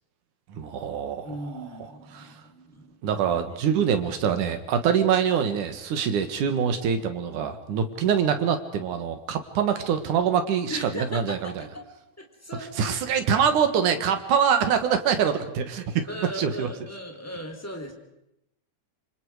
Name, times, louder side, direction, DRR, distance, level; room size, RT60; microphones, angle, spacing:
voice 1, 0.5-1.4 2.1-2.3 3.0-11.6 12.8-16.1 16.4-16.7, right 7 dB, 65° right, 8 dB, 3.0 m, -24 dB
voice 2, 1.2-3.2 3.6-3.8 10.7-11.9 12.2-12.9 16.1-17.9, equal, 5° left, 3 dB, 3.1 m, -38 dB
27.5 x 26.0 x 4.9 m, 0.85 s
omnidirectional pair, 4.1 m